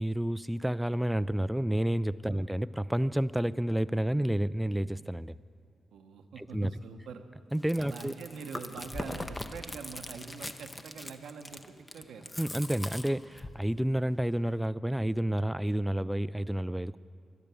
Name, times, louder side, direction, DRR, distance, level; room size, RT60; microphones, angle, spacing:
voice 1, 0.0-5.4 6.4-6.7 7.5-8.1 12.4-17.0, right 1 dB, 5° right, 18 dB, 0.3 m, -30 dB
voice 2, 5.9-7.2 7.8-12.3, right 5 dB, 80° right, 6 dB, 0.8 m, -44 dB
Chewing mastication, 7.5-13.6, left 1 dB, 25° left, 0.8 m, -41 dB
12.0 x 11.0 x 6.9 m, 2.3 s
supercardioid pair, 45°, 0 cm